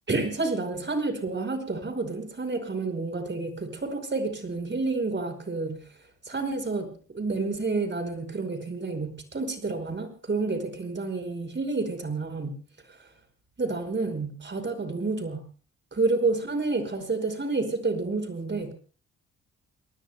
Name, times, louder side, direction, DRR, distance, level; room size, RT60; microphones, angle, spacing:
voice 1, 0.1-5.8 6.3-12.6 12.9-13.1 13.6-15.4 15.9-18.7, right 3 dB, 35° right, 7 dB, 5.4 m, -29 dB
29.5 x 19.5 x 2.2 m, 0.40 s
hypercardioid pair, 50°, 32 cm